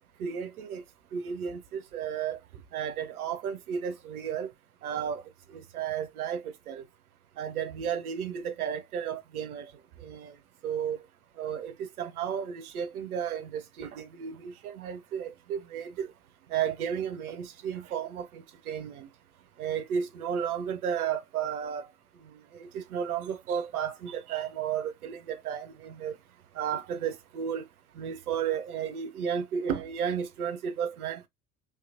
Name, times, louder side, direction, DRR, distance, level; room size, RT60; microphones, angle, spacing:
voice 1, 0.2-0.8 1.1-2.4 2.7-4.5 4.8-5.2 5.5-6.8 7.4-9.7 10.0-10.3 10.6-11.0 11.4-16.1 16.5-19.1 19.6-21.9 22.6-26.1 26.6-27.6 28.0-31.3, right 8 dB, 75° right, 0.8 m, -33 dB
3.5 x 2.9 x 2.5 m
figure-of-eight pair, 65°, 45 cm